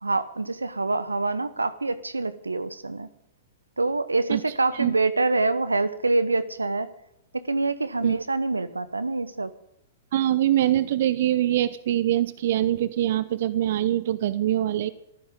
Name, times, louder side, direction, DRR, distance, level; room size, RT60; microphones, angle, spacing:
voice 1, 0.0-3.1 3.8-6.9 7.3-9.5, right 3 dB, 85° right, 16 dB, 1.1 m, -26 dB
voice 2, 10.1-14.9, right 12 dB, 55° right, 17 dB, 0.8 m, -23 dB
24.5 x 14.5 x 3.8 m, 0.79 s
figure-of-eight pair, 110°, 0 cm